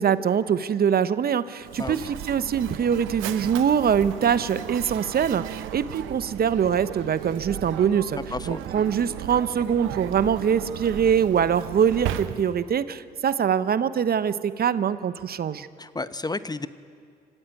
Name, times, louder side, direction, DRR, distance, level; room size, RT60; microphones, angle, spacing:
voice 1, 0.0-8.2 8.5-15.7, right 8 dB, 50° right, 14 dB, 1.0 m, -23 dB
Mechanisms, 1.6-12.8, right 12 dB, 70° right, 0.9 m, -36 dB
voice 2, 8.3-8.6 15.8-16.7, left 3 dB, 20° left, 13 dB, 0.9 m, -31 dB
26.0 x 14.5 x 9.2 m, 2.2 s
hypercardioid pair, 45°, 21 cm